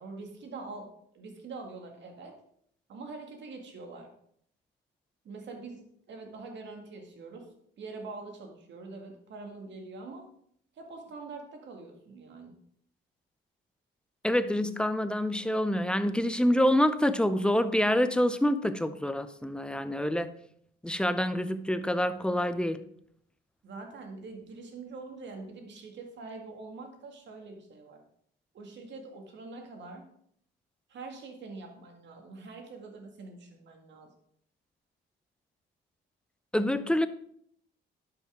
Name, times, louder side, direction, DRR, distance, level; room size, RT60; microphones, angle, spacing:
voice 1, 0.0-2.4 2.9-4.1 5.2-7.5 7.8-10.3 10.8-12.5 23.6-28.0 28.5-30.1 30.9-34.1, right 3 dB, 65° right, 1.9 m, -44 dB
voice 2, 14.2-20.3 20.8-22.8 36.5-37.1, left 1 dB, 5° left, 0.6 m, -26 dB
11.0 x 5.6 x 3.6 m
cardioid pair, 90°, 20 cm